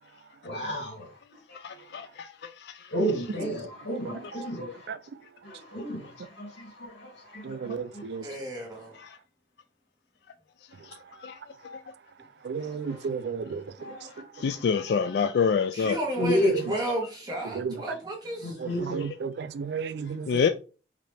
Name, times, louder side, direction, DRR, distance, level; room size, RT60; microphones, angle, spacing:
voice 1, 0.4-1.1 2.9-4.9 5.4-8.0 12.6-13.0 13.8-14.1 14.3-14.6 16.2-16.6 18.4-19.0, equal, 80° left, 2.3 m, -31 dB
voice 2, 1.5-2.9 9.0-9.2 10.8-11.4 11.6-11.8 14.4-16.0 20.3-20.5, left 6 dB, 65° left, 0.3 m, -27 dB
voice 3, 7.4-8.2 12.4-13.6 16.2-16.3 17.5-17.8 18.6-20.5, right 5 dB, 65° right, 0.3 m, -33 dB
voice 4, 8.2-9.0 15.1-15.3 15.7-18.6, right 1 dB, 20° right, 1.6 m, -33 dB
4.9 x 2.8 x 3.4 m
head